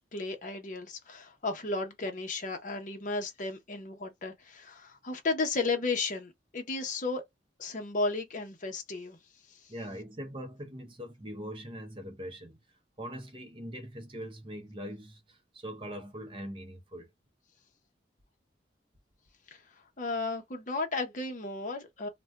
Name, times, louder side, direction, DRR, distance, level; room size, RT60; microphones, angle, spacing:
voice 1, 0.0-7.2 7.6-9.2 9.5-9.7 19.5-22.1, left 3 dB, 45° left, 0.7 m, -34 dB
voice 2, 9.7-12.6 13.0-17.1, equal, 30° right, 0.6 m, -42 dB
2.5 x 2.2 x 3.4 m
head